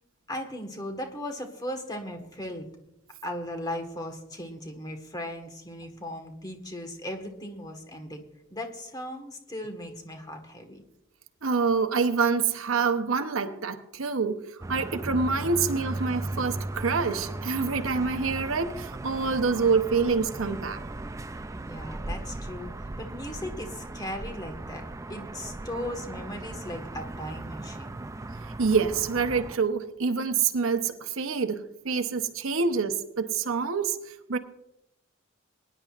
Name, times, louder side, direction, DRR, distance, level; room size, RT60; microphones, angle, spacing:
voice 1, 0.3-2.7 3.2-8.2 8.5-10.8 21.6-28.0, left 1 dB, 20° left, 1.5 m, -37 dB
voice 2, 11.4-14.4 14.7-20.8 28.6-34.0 34.3-34.4, right 5 dB, 85° right, 0.9 m, -26 dB
sound 1, 14.6-29.6, right 2 dB, 15° right, 0.3 m, -37 dB
22.5 x 10.5 x 2.5 m
head